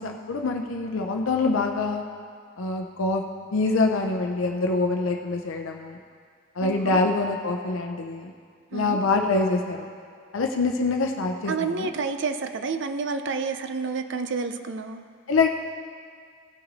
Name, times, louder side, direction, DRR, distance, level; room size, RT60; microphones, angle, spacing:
voice 1, 0.0-2.0 2.6-3.2 3.5-6.0 6.6-8.3 8.7-9.9 10.3-11.9 15.3-15.5, left 3 dB, 75° left, 3 dB, 0.6 m, -25 dB
voice 2, 6.6-7.1 8.7-9.0 11.5-15.1, right 4 dB, 60° right, 8 dB, 0.5 m, -29 dB
16.5 x 5.7 x 4.1 m, 2.1 s
head